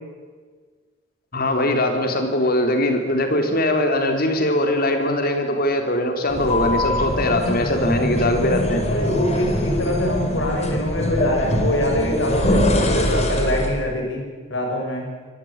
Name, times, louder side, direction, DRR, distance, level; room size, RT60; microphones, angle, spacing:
voice 1, 1.3-8.8, left 1 dB, 50° left, 5 dB, 3.9 m, -21 dB
sound 1, 6.3-13.8, left 1 dB, 35° left, 3.9 m, -23 dB
voice 2, 8.9-14.2 14.5-15.1, left 1 dB, 70° left, 1 dB, 6.7 m, -24 dB
25.5 x 18.0 x 9.0 m, 1.5 s
head